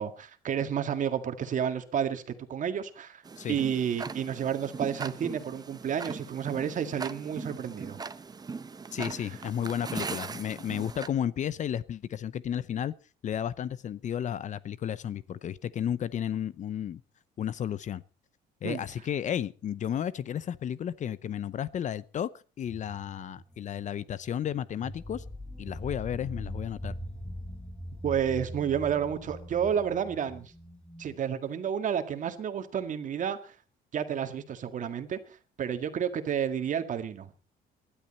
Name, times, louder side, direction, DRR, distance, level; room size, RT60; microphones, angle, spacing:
voice 1, 0.0-2.2 2.5-3.2 3.5-8.0 18.6-18.8 28.0-30.5 31.0-33.5 33.9-37.3, right 8 dB, 50° right, 1.9 m, -31 dB
Tick-tock, 3.2-11.1, right 4 dB, 25° right, 0.9 m, -39 dB
voice 2, 8.9-12.9 13.2-17.0 17.4-18.0 18.6-22.3 22.6-25.2 25.6-26.9, left 9 dB, 45° left, 0.7 m, -33 dB
sound 1, 22.7-31.2, equal, 5° left, 1.7 m, -42 dB
19.5 x 12.5 x 4.2 m
cardioid pair, 110°, 17 cm